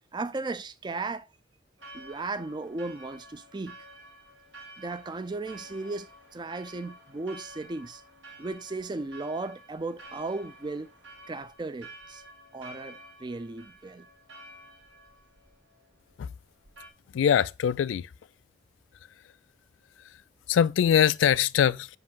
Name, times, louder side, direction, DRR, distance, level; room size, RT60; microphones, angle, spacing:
voice 1, 0.1-1.3 1.9-3.8 4.8-8.0 8.4-10.9 11.3-12.2 12.5-14.1, right 3 dB, 25° right, 0.4 m, -36 dB
Church bell, 1.8-16.9, right 1 dB, 80° right, 2.0 m, -50 dB
voice 2, 17.1-18.1 20.5-21.9, left 8 dB, 85° left, 0.3 m, -22 dB
5.9 x 5.1 x 3.6 m
head